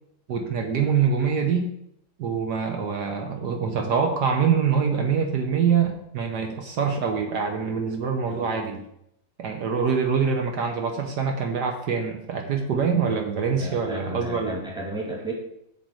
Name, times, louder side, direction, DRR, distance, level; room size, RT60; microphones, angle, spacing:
voice 1, 0.3-1.7 2.2-8.8 9.4-14.5, right 6 dB, 65° right, 4 dB, 1.5 m, -24 dB
voice 2, 13.6-15.3, right 1 dB, ahead, -3 dB, 2.2 m, -32 dB
8.2 x 6.8 x 4.7 m, 0.76 s
omnidirectional pair, 1.9 m